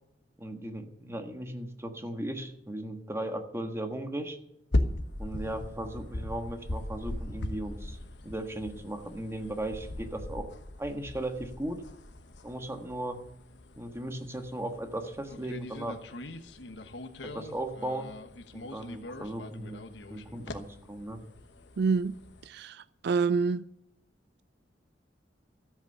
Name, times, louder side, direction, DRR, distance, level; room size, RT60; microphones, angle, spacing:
voice 1, 0.4-4.4 5.2-8.0 8.2-10.5 10.8-11.8 12.4-13.2 13.8-16.0 17.2-18.1 18.5-19.8 20.1-21.2, right 1 dB, 15° right, 1.4 m, -37 dB
sound 1, 4.7-22.5, left 1 dB, 85° left, 1.2 m, -39 dB
voice 2, 21.8-22.2 22.4-23.6, right 4 dB, 65° right, 0.4 m, -27 dB
13.5 x 8.3 x 6.7 m
head